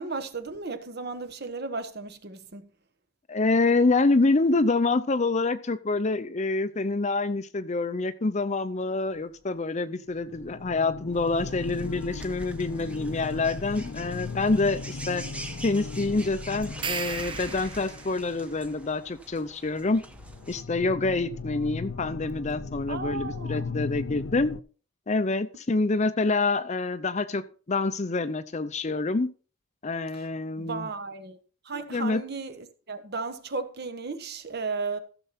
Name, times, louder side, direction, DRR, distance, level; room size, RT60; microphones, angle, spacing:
voice 1, 0.0-2.7 22.9-23.7 30.1-30.3 30.6-31.4 31.6-35.0, right 4 dB, 50° right, 1.2 m, -35 dB
voice 2, 3.3-15.2 15.6-20.0 20.5-24.6 25.1-29.3 29.8-30.9 31.9-32.2, left 3 dB, 35° left, 0.6 m, -26 dB
sound 1, 9.2-9.3 10.0-19.0 19.8-24.6, left 4 dB, 80° left, 0.6 m, -38 dB
sound 2, 11.1-20.6, right 1 dB, 5° right, 0.9 m, -44 dB
sound 3, 16.6-18.2, right 7 dB, 25° right, 0.4 m, -35 dB
14.5 x 6.9 x 4.2 m
head